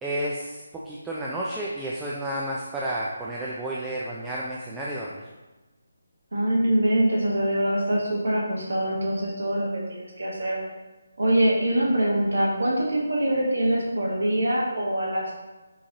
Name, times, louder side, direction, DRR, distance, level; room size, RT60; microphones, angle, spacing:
voice 1, 0.0-5.2, right 1 dB, 5° right, -6 dB, 0.3 m, -31 dB
voice 2, 6.3-10.6 11.2-15.3, right 1 dB, 75° right, -4 dB, 1.2 m, -24 dB
6.2 x 3.0 x 2.8 m, 1.2 s
figure-of-eight pair, 165°, 0 cm